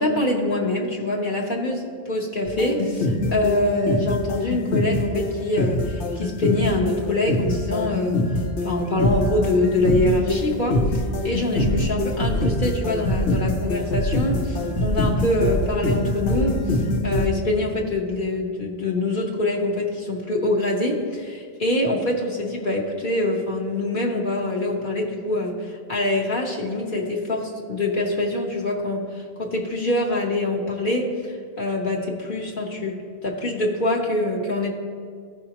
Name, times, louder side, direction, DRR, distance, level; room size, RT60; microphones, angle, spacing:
voice 1, 0.0-8.2 8.6-33.0 33.2-34.7, left 2 dB, 50° left, -1 dB, 1.1 m, -24 dB
sound 1, 2.5-17.3, left 1 dB, 80° left, 1.1 m, -24 dB
14.5 x 5.6 x 2.9 m, 2.1 s
omnidirectional pair, 1.2 m